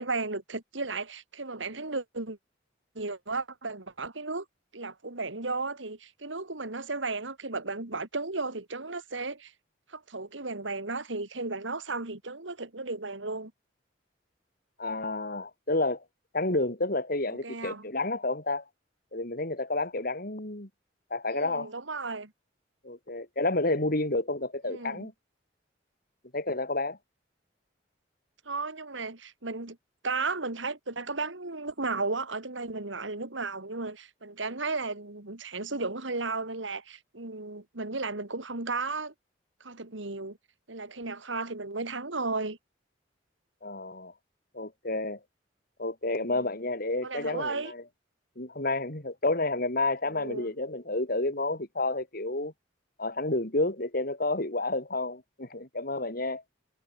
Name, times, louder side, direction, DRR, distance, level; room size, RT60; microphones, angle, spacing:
voice 1, 0.0-2.4 2.9-4.4 4.7-9.5 9.9-13.5 17.4-17.9 21.3-22.3 24.7-25.1 28.5-29.8 30.0-39.1 39.6-40.4 40.7-42.6 46.2-46.5 47.0-47.7 50.1-50.5, right 3 dB, 85° right, 2.7 m, -34 dB
voice 2, 14.8-16.0 16.3-18.6 19.1-20.7 21.1-21.7 22.8-25.1 26.3-27.0 43.6-44.1 44.5-45.2 45.8-47.8 48.4-52.5 53.0-56.4, left 2 dB, 50° left, 3.9 m, -30 dB
head